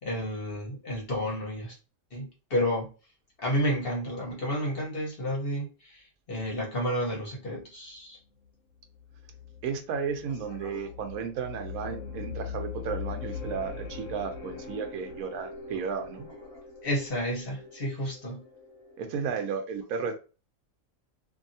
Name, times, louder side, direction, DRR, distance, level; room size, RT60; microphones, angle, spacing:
voice 1, 0.0-1.8 2.1-2.9 3.4-8.2 10.6-10.8 16.5-18.4, equal, 45° left, 1.1 m, -31 dB
sound 1, 9.0-19.3, left 6 dB, 65° left, 1.1 m, -41 dB
voice 2, 9.6-16.3 19.0-20.2, right 6 dB, 85° right, 1.1 m, -33 dB
2.7 x 2.7 x 2.6 m
omnidirectional pair, 1.5 m